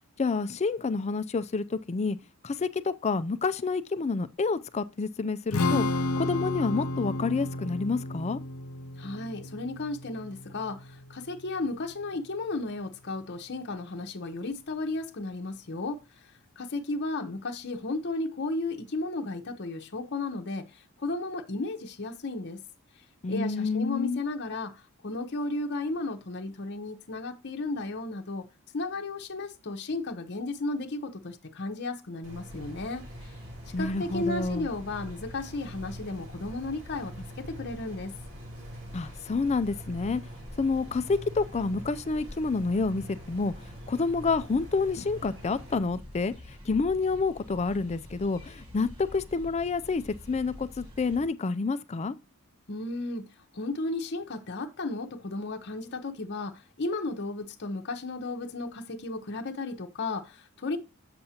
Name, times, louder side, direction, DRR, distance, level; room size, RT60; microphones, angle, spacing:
voice 1, 0.2-2.2 2.4-5.9 6.2-8.4 23.2-24.2 33.7-34.7 38.9-40.2 40.6-43.5 43.9-46.3 46.7-52.2, left 4 dB, 30° left, 0.4 m, -28 dB
Strum, 5.5-11.8, left 2 dB, 80° left, 0.6 m, -32 dB
voice 2, 9.0-16.0 16.6-22.6 23.3-28.5 28.7-33.0 33.8-38.1 52.7-53.2 53.5-60.8, left 2 dB, 50° left, 0.8 m, -34 dB
sound 1, 32.2-45.8, equal, 55° right, 2.3 m, -45 dB
sound 2, 32.5-51.3, left 1 dB, 25° right, 1.5 m, -47 dB
7.7 x 7.0 x 2.8 m
head